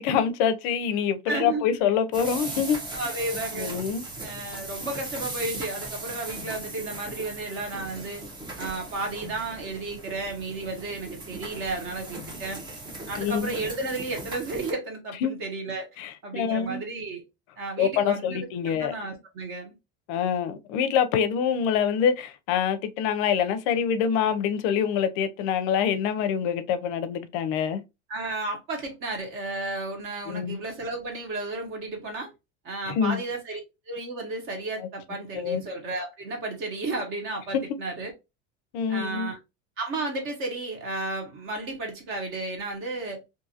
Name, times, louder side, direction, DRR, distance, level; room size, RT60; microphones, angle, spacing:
voice 1, 0.0-2.8 3.6-4.0 13.2-13.5 15.2-15.3 16.0-16.8 17.8-18.9 20.1-27.8 30.3-30.6 32.9-33.2 35.3-35.6 37.5-37.6 38.7-39.3, left 7 dB, 65° left, 0.5 m, -25 dB
voice 2, 1.3-1.8 2.9-3.8 4.2-8.2 8.6-12.6 13.1-15.9 16.2-17.2 17.6-19.7 28.1-32.3 32.6-33.6 33.9-38.1 38.9-39.4 39.8-43.2, right 2 dB, 40° right, 1.0 m, -33 dB
sound 1, 2.1-14.7, right 2 dB, 15° right, 0.4 m, -38 dB
2.6 x 2.4 x 2.6 m
cardioid pair, 165°, 31 cm